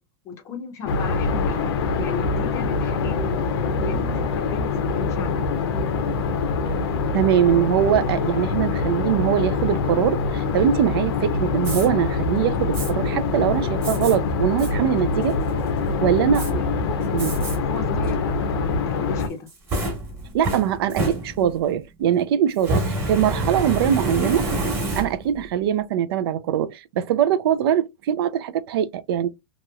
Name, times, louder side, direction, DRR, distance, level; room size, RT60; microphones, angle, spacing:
voice 1, 0.2-1.7 2.0-3.2 3.8-5.6 16.2-17.1 17.5-19.5, left 6 dB, 20° left, 0.5 m, -35 dB
sound 1, 0.9-19.3, left 4 dB, 70° left, 0.7 m, -24 dB
voice 2, 7.1-15.4 16.0-16.6 17.1-17.4 20.3-24.5 24.9-29.3, right 9 dB, 65° right, 0.4 m, -22 dB
Fire, 11.6-11.9 12.7-12.9 13.8-14.1 14.6-14.7 15.2-15.7 16.3-16.5 17.2-17.6 18.0-18.1 19.2-21.7 22.6-25.4, right 2 dB, 20° right, 1.1 m, -27 dB
2.9 x 2.8 x 2.2 m
supercardioid pair, 170°, 13 cm